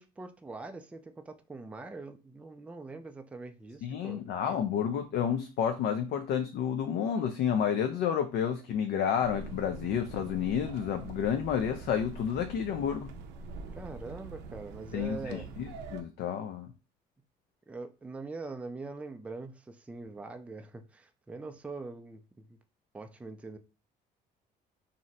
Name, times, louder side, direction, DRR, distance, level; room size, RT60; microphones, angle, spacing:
voice 1, 0.0-4.2 13.7-15.5 17.7-22.6 22.9-23.6, right 3 dB, 10° right, 0.3 m, -43 dB
voice 2, 3.8-13.1 14.9-15.4 15.9-16.7, left 8 dB, 70° left, 0.4 m, -30 dB
sound 1, 9.2-16.0, right 4 dB, 90° right, 0.5 m, -44 dB
2.6 x 2.1 x 3.9 m
cardioid pair, 110°, 17 cm